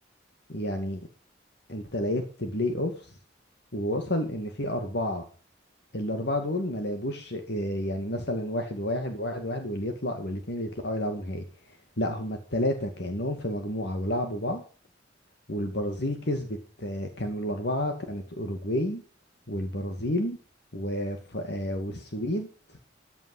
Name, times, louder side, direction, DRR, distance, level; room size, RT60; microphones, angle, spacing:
voice 1, 0.5-1.1 1.7-3.2 3.7-5.3 5.9-14.6 15.5-19.0 19.5-20.4 20.7-22.8, left 1 dB, 60° left, 5 dB, 2.2 m, -30 dB
14.5 x 11.0 x 5.6 m, 0.38 s
head